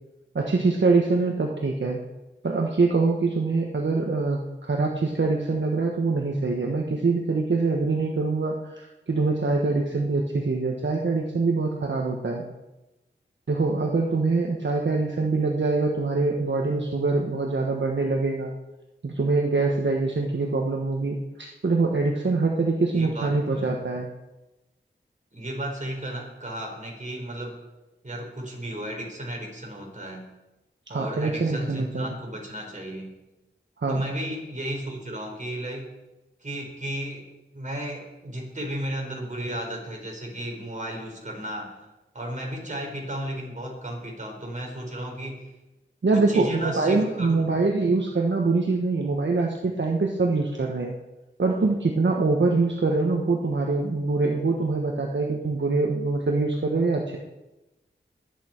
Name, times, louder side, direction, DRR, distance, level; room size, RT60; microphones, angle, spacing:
voice 1, 0.3-2.0 2.4-12.5 13.5-18.5 19.0-24.1 30.9-32.1 33.8-34.0 46.0-50.9 51.4-57.2, right 3 dB, 65° right, 1 dB, 1.3 m, -24 dB
voice 2, 22.9-23.8 25.3-27.5 28.0-30.3 30.9-33.1 33.9-35.9 36.4-37.2 37.5-41.7 42.1-45.4 46.1-47.5, right 1 dB, 40° right, -1 dB, 4.6 m, -34 dB
21.5 x 8.6 x 4.5 m, 1.0 s
wide cardioid pair, 60°, 20 cm